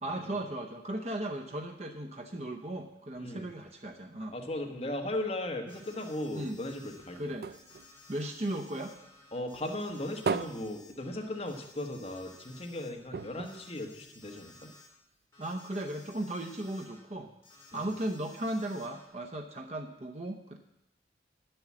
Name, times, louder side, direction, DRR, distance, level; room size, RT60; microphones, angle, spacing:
voice 1, 0.0-4.3 6.3-6.6 7.2-7.5 8.1-8.9 15.4-17.3 17.7-20.6, right 1 dB, 35° right, 4 dB, 0.7 m, -36 dB
voice 2, 4.3-7.3 9.3-14.5 17.7-17.8, left 1 dB, 35° left, 2 dB, 1.3 m, -37 dB
Alarm, 5.7-7.2 7.5-12.9 13.1-14.9 15.3-17.0 17.4-19.1, left 3 dB, 15° left, 3.7 m, -57 dB
sound 1, 6.5-9.2 9.5-11.8 12.1-12.2 12.5-12.6 13.1-14.6 15.2-15.3, right 5 dB, 55° right, 0.4 m, -38 dB
10.0 x 7.8 x 7.3 m, 0.88 s
head